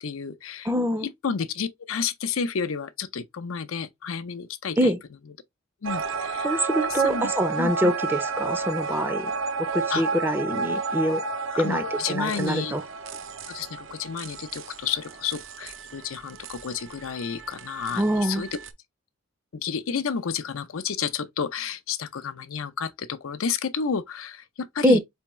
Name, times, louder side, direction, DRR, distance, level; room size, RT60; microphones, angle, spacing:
voice 1, 0.0-0.7 1.0-4.9 5.8-7.3 7.6-7.9 9.9-10.0 11.5-12.7 13.5-18.5 19.5-25.0, left 6 dB, 80° left, 0.6 m, -31 dB
voice 2, 0.6-1.1 4.8-5.0 6.4-9.3 9.7-11.2 11.6-12.8 18.0-18.4 24.8-25.0, equal, 10° right, 0.5 m, -24 dB
sound 1, 5.8-18.7, right 4 dB, 65° right, 0.6 m, -32 dB
4.5 x 3.5 x 3.0 m
head